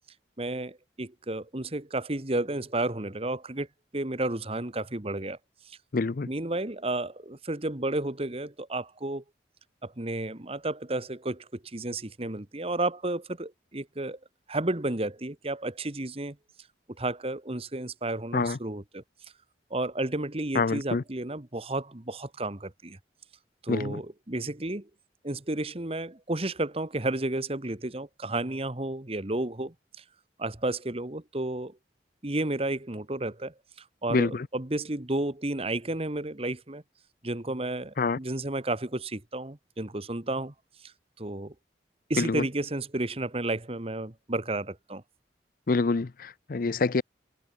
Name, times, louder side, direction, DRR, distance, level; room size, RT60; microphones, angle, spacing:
voice 1, 0.4-3.7 3.9-5.4 5.7-5.8 6.2-9.2 9.8-14.2 14.5-16.4 17.0-19.0 19.7-23.0 23.6-24.9 25.2-30.0 30.4-31.8 32.2-33.5 34.0-36.8 37.2-40.5 40.8-40.9 41.2-41.5 42.1-45.0, right 2 dB, 35° right, 1.5 m, -32 dB
voice 2, 5.9-6.3 18.3-18.6 20.5-21.0 23.7-24.0 34.1-34.5 38.0-38.2 42.2-42.4 45.7-47.0, left 4 dB, 50° left, 0.5 m, -26 dB
head